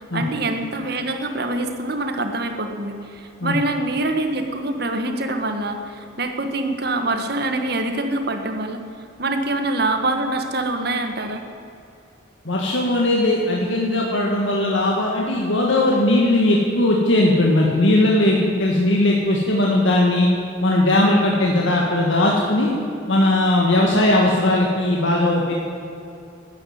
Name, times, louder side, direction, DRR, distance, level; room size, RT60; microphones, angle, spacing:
voice 1, 0.0-8.8 9.2-11.4, right 2 dB, 55° right, 5 dB, 1.6 m, -25 dB
voice 2, 12.5-20.3 20.6-22.7 23.1-25.5, left 1 dB, 80° left, -2 dB, 1.9 m, -18 dB
13.5 x 9.8 x 9.6 m, 2.7 s
head